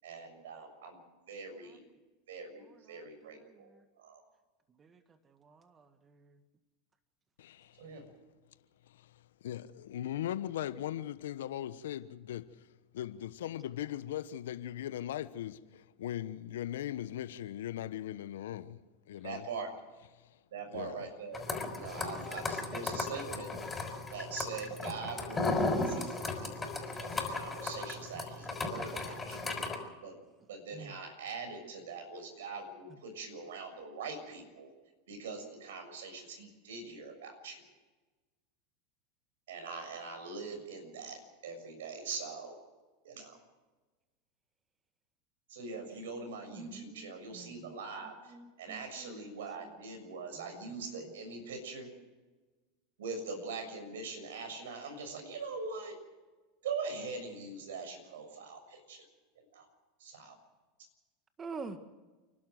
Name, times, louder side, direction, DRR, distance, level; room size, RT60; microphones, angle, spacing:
voice 1, 0.0-1.0 1.3-1.8 2.3-3.7 4.0-4.2 7.8-8.0 19.2-19.7 20.5-21.4 21.7-23.5 24.1-29.4 30.0-30.1 30.5-34.7 35.1-37.6 39.5-42.6 43.0-43.4 45.5-51.9 53.0-55.9 56.6-59.0 59.4-59.7 60.0-60.4, right 4 dB, 75° right, 6.7 m, -42 dB
voice 2, 2.7-3.6 4.8-5.0 5.4-6.3 30.7-30.9 46.5-47.7 48.3-49.2 50.4-50.5 61.4-61.8, right 4 dB, 25° right, 1.7 m, -48 dB
voice 3, 7.4-7.7 8.9-9.1 9.4-12.7 12.9-18.8 19.1-19.5 20.7-21.1 26.4-26.7, left 12 dB, 75° left, 1.1 m, -39 dB
sound 1, 21.3-29.8, left 3 dB, 15° left, 5.8 m, -36 dB
29.5 x 12.0 x 7.9 m
hypercardioid pair, 95°, 0 cm